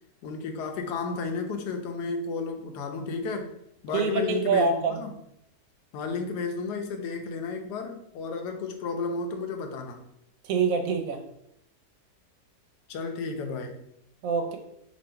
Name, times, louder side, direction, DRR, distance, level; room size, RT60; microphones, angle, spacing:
voice 1, 0.2-3.5 3.8-5.1 5.9-10.0 12.9-13.8, left 4 dB, 85° left, 5 dB, 1.2 m, -32 dB
voice 2, 3.9-5.0 10.4-11.2 14.2-14.6, right 5 dB, 70° right, 5 dB, 0.9 m, -25 dB
3.0 x 2.6 x 4.3 m, 0.78 s
omnidirectional pair, 1.7 m